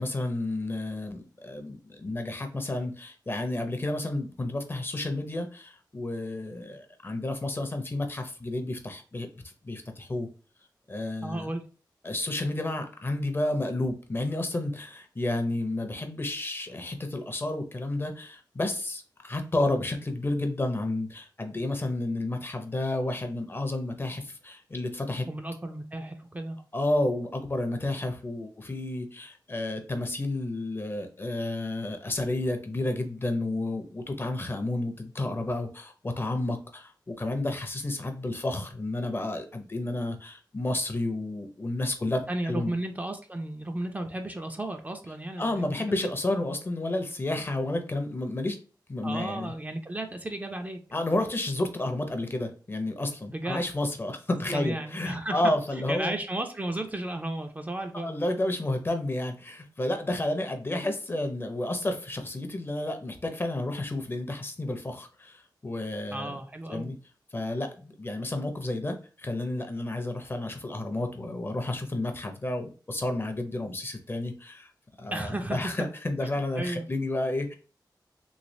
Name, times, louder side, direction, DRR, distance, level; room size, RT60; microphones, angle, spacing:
voice 1, 0.0-10.3 10.9-11.5 12.0-25.3 26.7-42.7 45.4-48.6 48.9-49.5 50.9-56.2 58.0-66.4 66.7-67.0 67.3-74.7 75.0-77.5, left 2 dB, 30° left, 6 dB, 0.5 m, -31 dB
voice 2, 11.2-11.6 25.3-26.6 42.3-46.1 49.0-50.8 53.3-53.7 54.5-58.2 66.1-66.9 75.1-75.7 76.6-76.9, right 1 dB, 20° right, 4 dB, 0.4 m, -34 dB
3.2 x 3.1 x 2.6 m, 0.38 s
wide cardioid pair, 125°, 8 cm